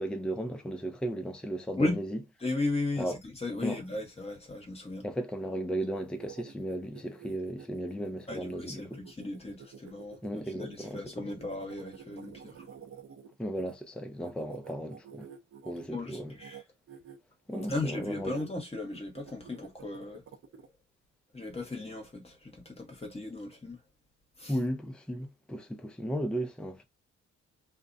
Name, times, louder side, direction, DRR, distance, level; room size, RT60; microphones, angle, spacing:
voice 1, 0.0-2.2 3.0-3.2 3.6-3.8 5.0-9.0 10.2-11.0 13.4-15.3 15.7-16.3 17.5-18.4 24.5-26.8, equal, 5° left, 0.4 m, -35 dB
voice 2, 2.4-5.0 8.3-12.7 15.9-16.6 17.7-20.2 21.3-23.8 24.4-24.5, left 2 dB, 20° left, 1.0 m, -36 dB
sound 1, 5.9-13.7 14.2-15.9 16.3-16.6 16.9-17.2 17.5-18.5 18.9-20.7, right 8 dB, 45° right, 0.6 m, -50 dB
2.3 x 2.0 x 2.6 m
cardioid pair, 90°, 30 cm